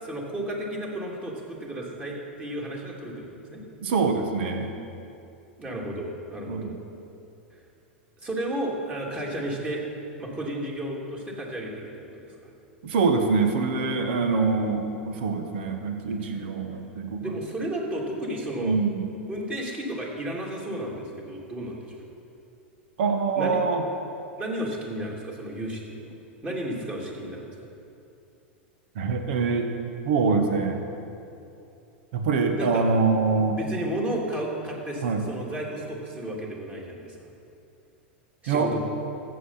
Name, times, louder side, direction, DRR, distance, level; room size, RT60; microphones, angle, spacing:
voice 1, 0.0-3.6 5.6-6.7 8.2-9.8 10.2-11.8 12.1-12.3 17.2-18.8 19.3-22.1 23.4-23.6 24.4-26.0 26.4-27.5 32.6-32.8 33.6-37.1 38.4-38.8, right 1 dB, 20° right, -2 dB, 2.9 m, -33 dB
voice 2, 3.8-4.7 6.5-6.8 12.8-17.4 18.6-19.0 23.0-23.8 28.9-29.7 30.0-30.8 32.1-33.6 35.0-35.2 38.5-38.7, right 4 dB, 60° right, 5 dB, 1.5 m, -24 dB
14.5 x 7.9 x 5.7 m, 2.7 s
hypercardioid pair, 95°, 6 cm